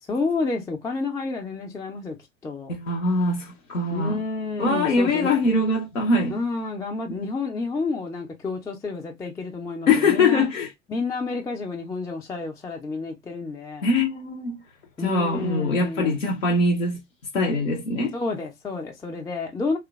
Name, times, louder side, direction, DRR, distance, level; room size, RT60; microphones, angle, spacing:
voice 1, 0.1-2.2 2.4-2.7 3.9-5.3 6.3-10.5 10.9-13.9 15.0-16.2 18.1-19.8, left 3 dB, 10° left, 0.3 m, -30 dB
voice 2, 2.7-4.2 4.6-6.4 7.1-7.3 9.9-10.7 13.8-14.6 15.0-17.0 17.3-18.2, left 3 dB, 90° left, 0.5 m, -22 dB
2.9 x 2.0 x 2.3 m
figure-of-eight pair, 70°, 37 cm